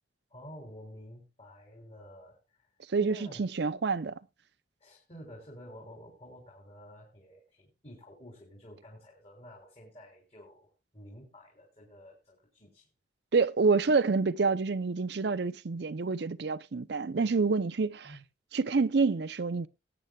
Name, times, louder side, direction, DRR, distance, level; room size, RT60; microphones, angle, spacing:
voice 1, 0.3-2.7 3.0-3.4 4.8-12.9 18.0-18.2, equal, 35° left, 3.3 m, -50 dB
voice 2, 2.9-4.2 13.3-18.1 18.5-19.7, right 4 dB, 60° right, 0.5 m, -27 dB
20.5 x 8.9 x 2.3 m
head